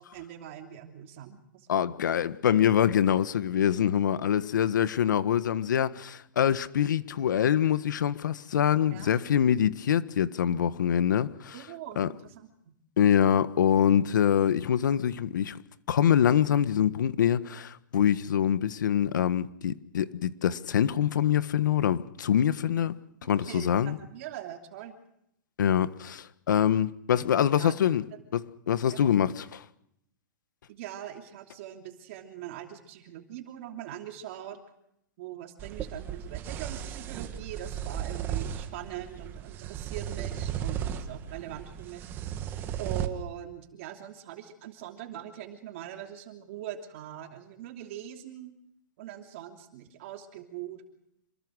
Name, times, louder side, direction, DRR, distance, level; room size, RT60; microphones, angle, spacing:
voice 1, 0.0-1.9 8.9-9.2 11.5-12.7 23.2-24.9 27.3-27.9 28.9-29.0 30.7-34.6 35.2-42.1 42.8-48.5 49.0-50.8, right 11 dB, 40° right, 3.0 m, -42 dB
voice 2, 1.7-11.6 12.0-12.1 13.0-15.6 15.9-22.9 23.2-24.0 25.6-28.0 28.3-29.6, left 9 dB, 70° left, 1.5 m, -25 dB
sound 1, 35.6-43.1, right 9 dB, 20° right, 1.9 m, -35 dB
28.0 x 21.5 x 6.4 m
hypercardioid pair, 165°, 10 cm